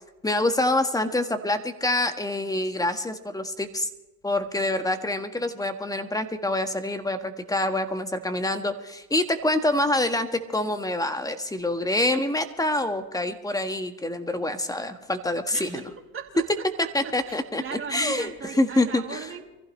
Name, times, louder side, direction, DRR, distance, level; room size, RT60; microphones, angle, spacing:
voice 1, 0.2-3.9 4.2-15.8 16.9-17.6 17.9-18.3 18.6-19.3, left 1 dB, 10° left, 8 dB, 1.5 m, -26 dB
voice 2, 15.5-19.5, right 6 dB, 30° right, 0 dB, 2.8 m, -38 dB
24.0 x 15.0 x 3.2 m, 1.0 s
hypercardioid pair, 75°, 44 cm